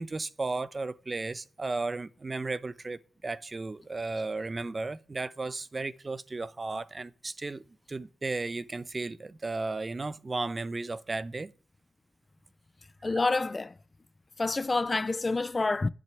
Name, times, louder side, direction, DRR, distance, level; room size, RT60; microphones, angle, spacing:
voice 1, 0.0-11.5 13.0-13.1, right 3 dB, 35° right, 0.8 m, -34 dB
voice 2, 13.0-13.7 14.4-15.9, left 3 dB, 35° left, 0.6 m, -28 dB
10.5 x 6.5 x 9.2 m
cardioid pair, 65°, 0 cm